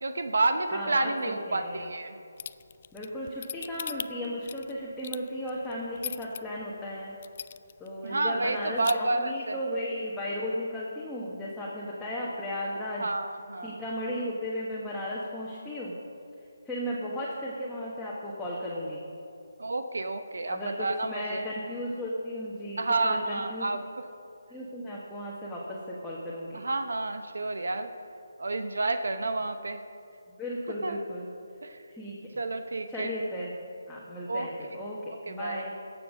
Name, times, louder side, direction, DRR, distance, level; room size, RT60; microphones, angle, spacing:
voice 1, 0.0-2.2 8.0-9.6 13.0-13.8 19.6-21.4 22.8-23.8 26.5-27.9 28.4-29.8 30.8-31.0 31.6-31.8 32.4-33.1 34.3-34.5 35.3-35.6, right 2 dB, 75° right, 9 dB, 0.8 m, -30 dB
voice 2, 0.7-1.9 2.9-7.1 7.8-13.1 13.6-16.0 16.6-19.0 20.5-22.8 23.0-23.7 24.5-26.6 30.4-31.3 31.9-32.2 32.9-33.5 33.9-35.0 35.3-35.7, equal, 5° left, -8 dB, 1.3 m, -35 dB
sound 1, 2.4-6.4 6.8-6.9 7.2-7.9 8.2-8.3 8.6-8.9, left 8 dB, 40° left, 0.3 m, -37 dB
17.0 x 7.1 x 6.3 m, 2.6 s
figure-of-eight pair, 155°, 0 cm